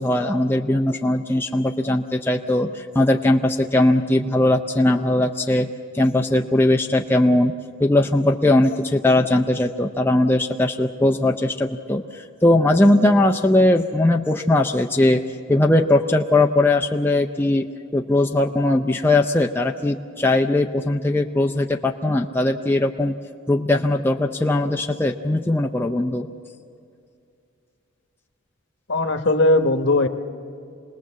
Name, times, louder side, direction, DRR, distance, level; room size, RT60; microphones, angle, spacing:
voice 1, 0.0-7.5 7.8-15.2 15.5-17.7 17.9-23.1 23.5-26.3, left 1 dB, 10° left, 2 dB, 0.5 m, -19 dB
voice 2, 28.9-30.1, left 2 dB, 55° left, 7 dB, 1.1 m, -18 dB
27.0 x 19.5 x 7.4 m, 2.5 s
head